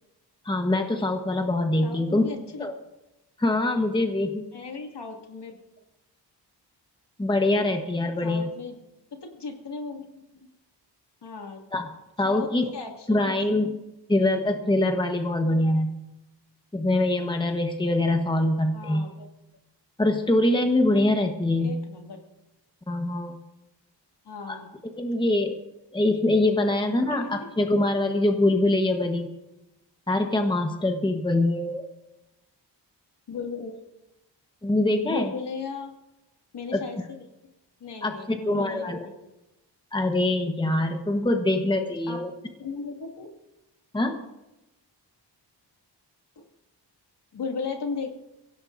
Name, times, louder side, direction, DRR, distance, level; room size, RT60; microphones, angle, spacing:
voice 1, 0.4-2.2 2.6-2.7 3.4-4.5 7.2-8.5 11.7-11.9 12.2-12.6 13.1-13.8 14.1-15.9 16.7-19.1 20.0-21.8 22.9-23.4 24.5-24.6 25.0-25.6 25.9-29.3 30.1-31.9 34.6-35.3 36.7-36.8 38.0-39.1 39.9-42.3 43.9-44.2, left 1 dB, 10° left, 5 dB, 1.2 m, -24 dB
voice 2, 1.8-2.7 4.5-5.6 8.2-8.8 9.1-10.5 11.2-11.6 12.2-13.7 18.7-19.3 21.6-22.2 24.3-24.7 27.1-27.5 33.3-33.8 35.0-35.9 36.5-37.2 37.8-39.1 42.1-42.2 42.6-43.3 46.4-46.5 47.3-48.1, left 4 dB, 70° left, 2 dB, 2.4 m, -36 dB
23.5 x 16.5 x 2.6 m, 0.97 s
wide cardioid pair, 125°, 43 cm